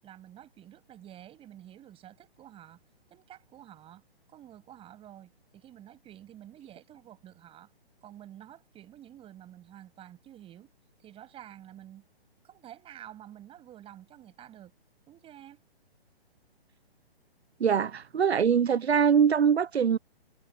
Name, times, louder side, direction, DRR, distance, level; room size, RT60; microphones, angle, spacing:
voice 1, 0.0-2.8 3.1-4.0 4.3-7.7 8.0-10.7 11.0-12.0 12.4-14.7 15.1-15.6, right 12 dB, 15° right, 7.6 m, -50 dB
voice 2, 17.6-20.0, right 7 dB, 85° right, 0.7 m, -23 dB
hypercardioid pair, 140°, 31 cm